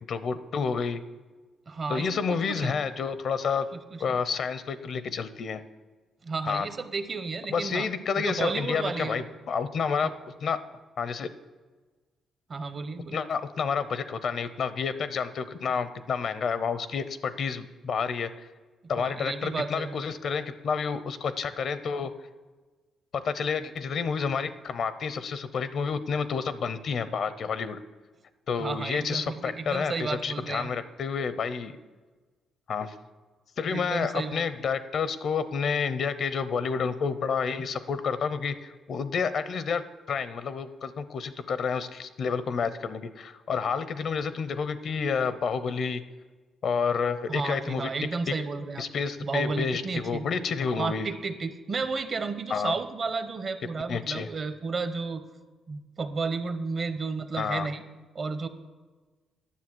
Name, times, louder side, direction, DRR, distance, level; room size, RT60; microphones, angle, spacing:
voice 1, 0.1-1.0 1.9-3.7 4.0-5.6 6.4-6.7 7.5-10.1 10.4-10.6 11.0-11.3 13.1-18.3 18.9-22.1 23.1-27.8 28.5-31.7 32.7-32.9 33.6-39.8 40.1-46.0 46.6-47.9 48.8-51.1 52.5-52.8 53.9-54.3 57.4-57.7, left 6 dB, 60° left, 14 dB, 0.6 m, -29 dB
voice 2, 1.7-2.2 2.5-2.8 3.9-4.2 6.2-7.9 8.2-9.3 10.0-10.1 12.5-13.2 19.0-20.0 28.6-30.7 33.7-34.5 47.3-48.8 49.2-50.3 50.8-55.2 55.7-57.8 58.1-58.5, right 4 dB, 45° right, 11 dB, 0.8 m, -32 dB
10.0 x 7.0 x 6.1 m, 1.3 s
cardioid pair, 90°, 0 cm